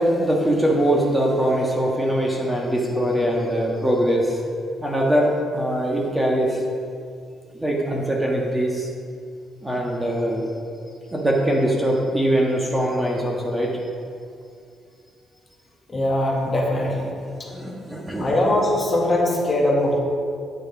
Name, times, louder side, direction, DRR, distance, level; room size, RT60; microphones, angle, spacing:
voice 1, 0.0-4.4 4.8-6.6 7.5-8.9 9.6-10.5 11.1-13.7 17.5-18.3, right 1 dB, 10° right, -2 dB, 1.6 m, -22 dB
voice 2, 15.9-17.1 18.2-20.0, left 1 dB, 25° left, -2 dB, 1.9 m, -21 dB
9.5 x 6.7 x 5.4 m, 2.3 s
cardioid pair, 90°, 0 cm